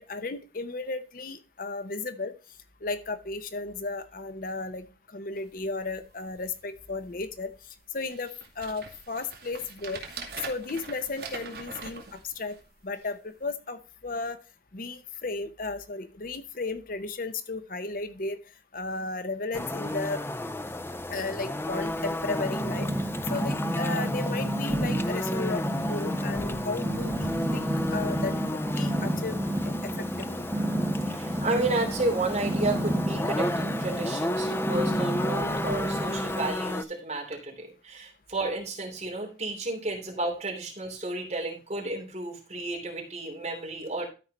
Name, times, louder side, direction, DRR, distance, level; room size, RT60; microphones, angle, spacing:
voice 1, 0.0-2.3 2.8-8.3 8.6-10.0 10.5-12.6 12.8-14.4 14.7-18.4 18.7-20.2 21.1-22.9 23.3-30.5, left 3 dB, 50° left, 10 dB, 0.8 m, -34 dB
sound 1, 5.3-5.5 6.0-6.1 6.3-6.8 7.4-7.5 8.0-12.8 13.4-13.5, right 4 dB, 60° right, 2.2 m, -42 dB
sound 2, 19.5-36.8, left 1 dB, 15° left, 0.4 m, -32 dB
Purr, 21.7-36.5, right 1 dB, 15° right, 1.9 m, -31 dB
voice 2, 31.1-44.0, right 2 dB, 40° right, 0 dB, 3.0 m, -32 dB
12.5 x 4.8 x 4.2 m, 0.32 s
head